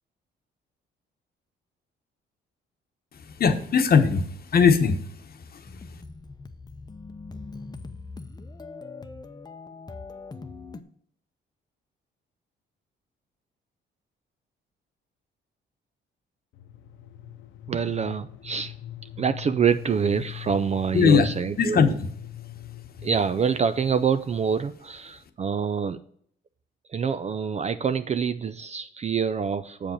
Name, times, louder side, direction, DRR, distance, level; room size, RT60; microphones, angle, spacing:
voice 1, 3.4-5.7 20.9-21.3 21.6-22.1, left 6 dB, 50° left, 7 dB, 1.0 m, -20 dB
sound 1, 5.7-10.8, left 3 dB, 20° left, 0.7 m, -41 dB
sound 2, 16.5-24.4, left 13 dB, 80° left, 0.6 m, -42 dB
voice 2, 17.7-18.7 19.2-21.9 23.0-26.0 26.9-29.9, right 6 dB, 35° right, 11 dB, 0.4 m, -26 dB
7.2 x 5.0 x 6.4 m, 0.64 s
cardioid pair, 90°, 20 cm